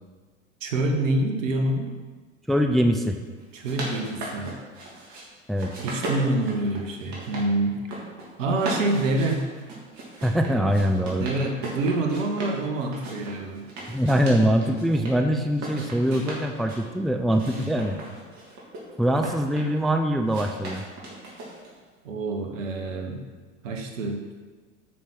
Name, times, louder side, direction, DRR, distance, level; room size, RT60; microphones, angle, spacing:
voice 1, 0.6-1.9 3.5-4.6 5.7-7.8 8.4-9.5 11.2-13.7 17.4-17.6 22.0-23.2 23.6-24.2, right 2 dB, 70° right, 3 dB, 1.7 m, -26 dB
voice 2, 2.5-3.2 5.5-5.7 10.2-11.3 13.9-18.0 19.0-20.8, equal, ahead, 5 dB, 0.6 m, -23 dB
sound 1, 3.4-5.2 5.6-7.5 7.7-8.3 8.6-12.6 12.9-15.1 15.5-16.8 17.3-19.8 20.3-21.8, right 2 dB, 45° right, 3.2 m, -37 dB
9.3 x 6.3 x 5.9 m, 1.4 s
figure-of-eight pair, 80°, 40 cm